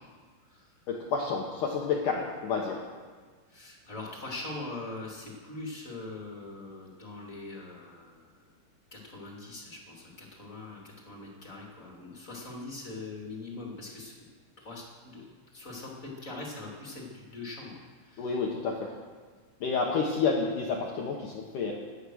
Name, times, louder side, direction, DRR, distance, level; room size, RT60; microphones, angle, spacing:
voice 1, 0.9-2.8 18.2-18.9 19.6-21.7, left 5 dB, 80° left, -1 dB, 1.8 m, -29 dB
voice 2, 3.5-8.2 8.9-14.1 14.6-15.3 15.5-17.8 18.1-18.4, left 2 dB, 25° left, -2 dB, 2.1 m, -42 dB
17.5 x 11.5 x 6.4 m, 1.5 s
omnidirectional pair, 5.7 m